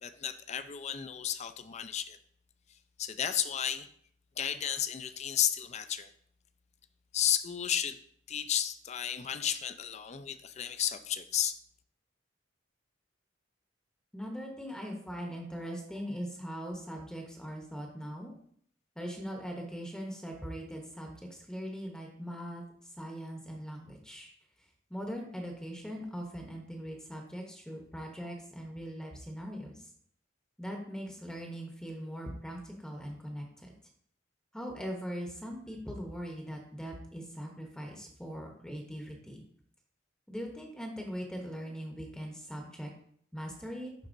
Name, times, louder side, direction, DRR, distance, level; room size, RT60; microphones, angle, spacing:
voice 1, 0.0-2.2 3.0-3.9 4.4-6.1 7.1-8.0 8.3-11.6, left 9 dB, 35° left, 0.4 m, -33 dB
voice 2, 14.1-18.3 19.0-24.3 24.6-29.9 30.6-33.7 34.5-39.4 40.3-42.9 43.3-43.9, equal, 5° left, 0.8 m, -41 dB
11.0 x 4.0 x 2.6 m
head